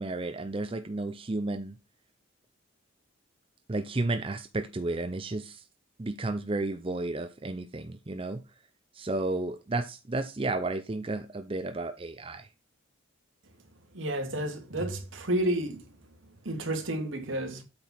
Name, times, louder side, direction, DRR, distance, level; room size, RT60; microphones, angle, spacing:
voice 1, 0.0-1.8 3.7-5.6 6.0-8.4 8.9-12.5, right 2 dB, 25° right, 0.5 m, -32 dB
voice 2, 13.9-15.8 16.5-17.6, right 1 dB, 70° right, 2.1 m, -31 dB
8.6 x 4.6 x 5.9 m
head